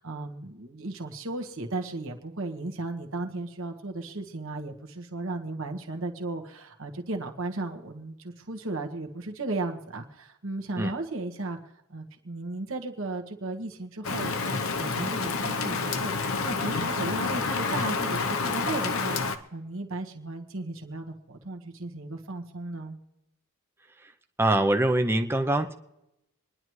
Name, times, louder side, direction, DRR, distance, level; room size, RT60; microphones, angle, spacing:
voice 1, 0.0-11.6 11.9-19.2 19.5-23.0, right 2 dB, 60° right, 3 dB, 1.4 m, -35 dB
Rain, 14.0-19.4, left 4 dB, 65° left, 0.9 m, -28 dB
voice 2, 24.4-25.7, right 1 dB, 10° right, 6 dB, 0.6 m, -23 dB
27.0 x 10.5 x 3.2 m, 0.88 s
head